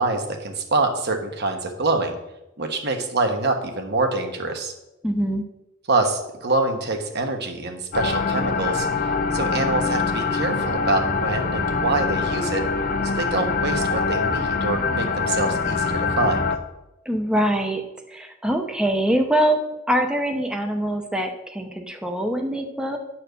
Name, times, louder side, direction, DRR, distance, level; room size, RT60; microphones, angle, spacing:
voice 1, 0.0-2.2 2.6-4.7 5.9-8.9 9.3-12.6 13.0-16.4, right 3 dB, 55° right, 4 dB, 1.4 m, -25 dB
voice 2, 5.0-5.4 17.1-17.8 18.1-19.6 19.9-23.0, right 1 dB, 5° right, 3 dB, 0.8 m, -23 dB
sound 1, 7.9-16.6, left 4 dB, 45° left, 0.7 m, -24 dB
10.5 x 4.4 x 6.8 m, 0.94 s
head